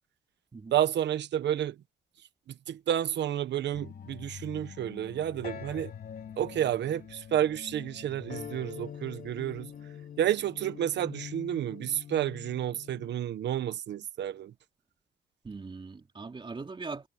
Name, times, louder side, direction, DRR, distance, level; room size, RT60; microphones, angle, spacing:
voice 1, 0.7-1.7 2.7-5.9 6.4-9.7 10.2-14.5, right 11 dB, 85° right, 1.1 m, -30 dB
sound 1, 3.7-13.2, left 8 dB, 60° left, 3.7 m, -45 dB
voice 2, 15.4-17.1, right 4 dB, 30° right, 3.2 m, -40 dB
wide cardioid pair, 130°, 18 cm